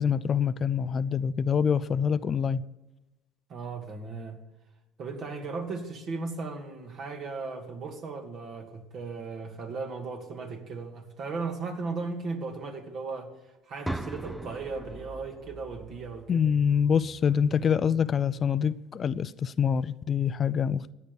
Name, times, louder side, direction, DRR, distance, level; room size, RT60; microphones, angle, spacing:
voice 1, 0.0-2.7 16.3-20.9, left 7 dB, 40° left, 0.5 m, -25 dB
voice 2, 3.5-4.4 5.0-13.3 13.7-16.5, right 4 dB, 50° right, 2.4 m, -36 dB
sound 1, 13.8-17.8, right 1 dB, 5° right, 0.6 m, -41 dB
14.0 x 9.7 x 7.1 m
hypercardioid pair, 70°, 0 cm